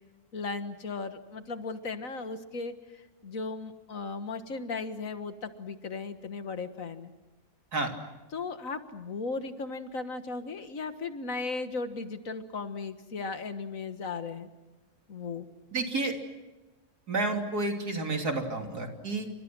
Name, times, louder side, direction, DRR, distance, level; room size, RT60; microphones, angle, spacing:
voice 1, 0.3-7.1 8.3-14.5 15.1-15.5, left 4 dB, 60° left, 9 dB, 1.9 m, -36 dB
voice 2, 15.7-16.1 17.1-19.3, right 2 dB, 85° right, 3 dB, 3.8 m, -30 dB
29.5 x 26.5 x 6.1 m, 1.1 s
omnidirectional pair, 1.6 m